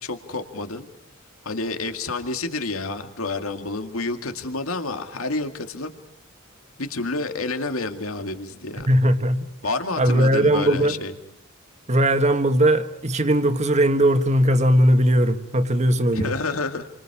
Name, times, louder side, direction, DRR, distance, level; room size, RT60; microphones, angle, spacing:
voice 1, 0.0-0.9 1.4-5.9 6.8-8.9 9.6-11.1 16.1-16.9, left 3 dB, 80° left, 2.1 m, -29 dB
voice 2, 8.9-9.5 10.0-11.0 11.9-16.3, right 1 dB, 30° right, 1.6 m, -19 dB
29.5 x 25.0 x 4.9 m
head